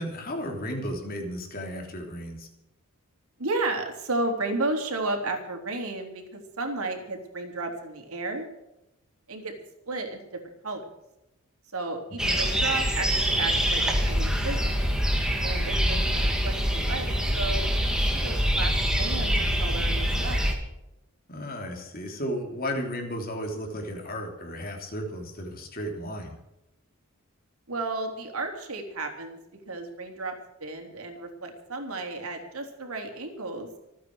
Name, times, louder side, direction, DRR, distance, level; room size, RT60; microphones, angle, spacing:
voice 1, 0.0-2.5 12.2-12.4 15.7-16.0 21.3-26.4, equal, 40° left, 3 dB, 3.4 m, -34 dB
voice 2, 3.4-8.5 9.3-9.5 9.9-10.8 11.7-14.7 15.4-18.7 19.0-20.4 27.7-29.4 29.7-30.3 30.6-33.7, right 2 dB, 80° right, 3 dB, 3.7 m, -33 dB
sound 1, 12.2-20.5, equal, 5° right, 2.2 m, -25 dB
26.5 x 9.3 x 4.8 m, 0.92 s
head